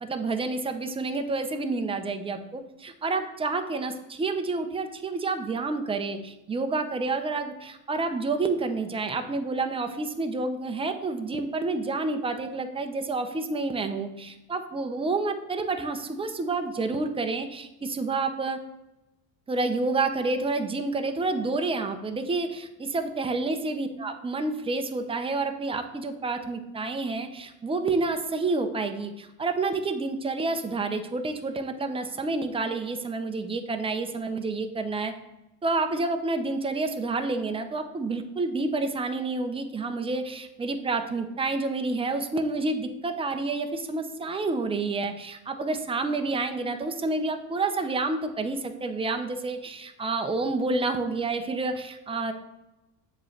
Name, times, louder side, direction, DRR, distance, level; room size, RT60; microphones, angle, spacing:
voice 1, 0.0-18.6 19.5-35.1 35.6-52.3, right 3 dB, 10° right, 6 dB, 0.6 m, -29 dB
7.4 x 3.3 x 5.7 m, 0.98 s
supercardioid pair, 95°, 48 cm